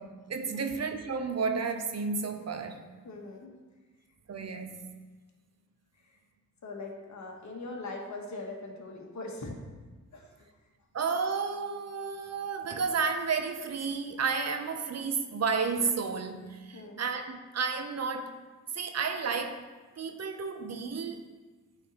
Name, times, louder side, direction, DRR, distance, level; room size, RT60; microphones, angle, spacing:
voice 1, 0.0-2.9 4.3-4.9 10.9-18.3 18.7-19.7 20.0-21.2, right 5 dB, 50° right, 7 dB, 0.6 m, -32 dB
voice 2, 3.0-3.5 5.9-6.2 6.6-9.6 10.1-10.5 16.7-17.0, left 2 dB, 60° left, 1 dB, 1.2 m, -41 dB
8.7 x 4.0 x 3.0 m, 1.3 s
cardioid pair, 70°, 33 cm